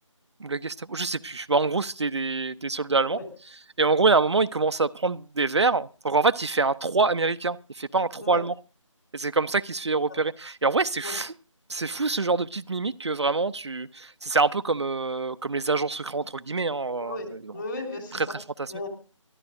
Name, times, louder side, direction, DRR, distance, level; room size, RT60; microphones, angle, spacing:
voice 1, 0.4-3.2 3.8-8.5 9.1-11.3 11.7-17.5 18.1-18.7, right 3 dB, 55° right, 0.6 m, -25 dB
voice 2, 17.0-18.3 18.7-18.9, left 2 dB, 40° left, 3.8 m, -36 dB
23.5 x 14.0 x 2.5 m
figure-of-eight pair, 160°, 17 cm